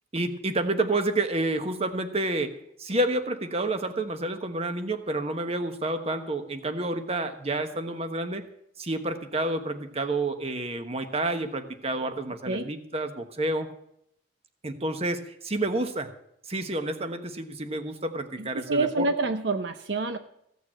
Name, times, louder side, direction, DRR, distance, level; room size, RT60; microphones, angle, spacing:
voice 1, 0.1-8.4 8.8-13.7 14.6-16.1 16.5-19.0, right 2 dB, 35° right, 7 dB, 1.2 m, -29 dB
voice 2, 18.4-20.2, right 3 dB, 70° right, 8 dB, 0.8 m, -27 dB
15.5 x 6.9 x 7.7 m, 0.75 s
head